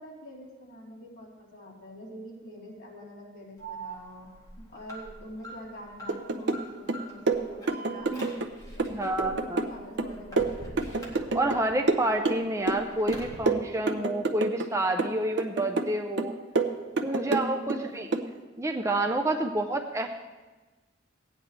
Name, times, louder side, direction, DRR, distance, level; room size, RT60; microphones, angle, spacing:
voice 1, 0.0-4.3 4.7-8.4 8.8-10.7 17.2-18.1 19.4-19.5, equal, 50° left, -6 dB, 3.8 m, -44 dB
Alarm, 3.6-11.7 12.1-13.3, right 2 dB, 20° left, 1.9 m, -44 dB
sound 1, 6.1-6.6 6.9-8.5 8.8-11.6 11.9-12.8 13.1-14.7 15.0-15.9 16.2-17.8 18.1-18.3, right 3 dB, 65° right, 0.7 m, -28 dB
voice 2, 8.9-9.7 11.3-16.3 17.0-18.1 18.6-20.1, right 1 dB, 15° right, 4 dB, 0.5 m, -29 dB
16.5 x 9.7 x 3.3 m, 1.2 s
head